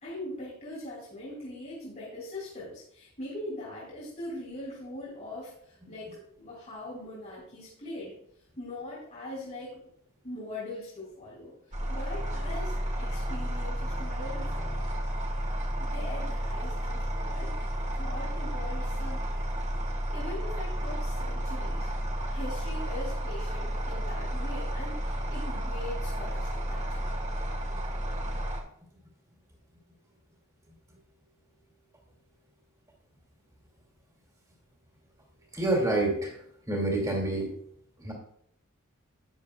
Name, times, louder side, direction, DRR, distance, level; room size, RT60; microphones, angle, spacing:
voice 1, 0.0-6.1 6.4-8.1 8.6-9.9 10.2-14.7 15.8-19.5 20.1-21.9 22.3-27.1, left 1 dB, 35° left, -5 dB, 3.0 m, -41 dB
sound 1, 11.7-28.6, equal, 35° right, 1.4 m, -32 dB
voice 2, 35.5-36.3 36.7-37.5 38.0-38.1, right 2 dB, 15° right, -1 dB, 2.4 m, -27 dB
11.5 x 9.8 x 2.4 m, 0.68 s
head